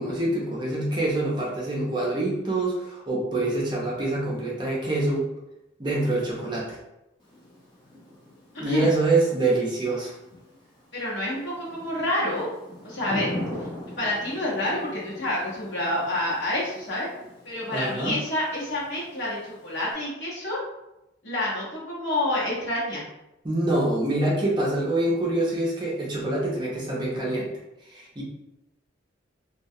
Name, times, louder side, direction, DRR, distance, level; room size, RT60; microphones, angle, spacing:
voice 1, 0.0-5.3 5.8-6.8 8.6-10.1 17.7-18.2 23.4-27.5 27.9-28.2, right 2 dB, 25° right, -5 dB, 0.5 m, -25 dB
Thunder / Rain, 7.2-19.9, left 1 dB, 25° left, 0.6 m, -41 dB
voice 2, 10.9-12.5 12.8-13.3 14.0-17.1 17.4-20.6 21.2-23.0, left 1 dB, 65° left, -6 dB, 0.9 m, -28 dB
2.3 x 2.2 x 2.7 m, 0.91 s
head